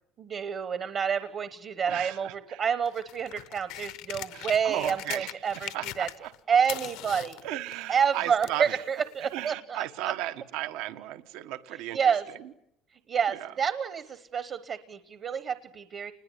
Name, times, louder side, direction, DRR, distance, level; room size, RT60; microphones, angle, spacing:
voice 1, 0.2-5.7 6.0-6.1 6.5-7.4 7.9-10.1 11.9-12.2 13.1-16.1, right 7 dB, 35° right, 13 dB, 1.0 m, -28 dB
voice 2, 1.9-2.6 4.3-5.4 5.7-6.3 7.4-8.8 9.2-12.4 13.3-13.5, right 14 dB, 80° right, 10 dB, 1.3 m, -35 dB
sound 1, 2.8-6.4 6.6-8.7 9.5-9.6, left 16 dB, 75° left, 1.0 m, -40 dB
28.5 x 20.5 x 9.7 m, 0.80 s
cardioid pair, 170°, 0 cm